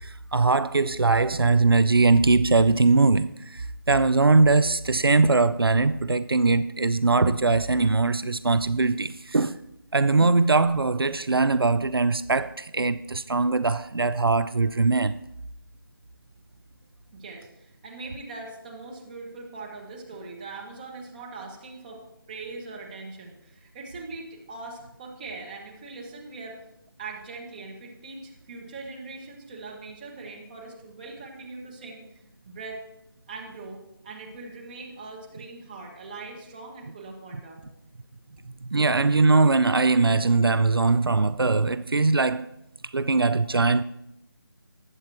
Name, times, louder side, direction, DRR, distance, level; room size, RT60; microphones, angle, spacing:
voice 1, 0.0-9.6 9.9-15.2 38.7-42.5 42.9-43.8, right 3 dB, 85° right, 0.5 m, -21 dB
voice 2, 17.1-26.6 27.0-32.1 32.4-32.8 33.3-37.6, right 3 dB, 25° right, 1.8 m, -41 dB
20.0 x 8.1 x 3.0 m
figure-of-eight pair, 160°, 12 cm